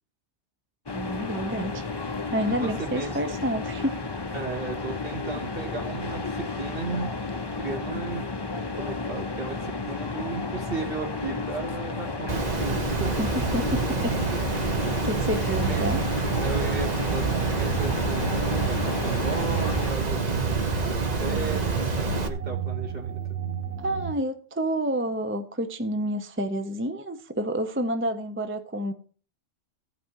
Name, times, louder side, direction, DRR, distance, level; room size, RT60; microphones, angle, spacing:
sound 1, 0.9-19.9, left 3 dB, 25° left, 0.7 m, -33 dB
voice 1, 0.9-1.8 2.3-4.0 13.2-14.1 15.0-16.0 23.8-28.9, right 1 dB, 15° right, 0.6 m, -29 dB
voice 2, 2.4-3.2 4.3-7.1 7.6-8.2 8.7-13.2 15.2-15.9 16.4-17.3 17.6-23.4, right 4 dB, 55° right, 2.7 m, -35 dB
Water, 12.3-22.3, right 4 dB, 40° right, 1.1 m, -27 dB
sound 2, 14.0-24.1, right 8 dB, 85° right, 1.2 m, -33 dB
16.0 x 5.8 x 4.7 m
omnidirectional pair, 1.2 m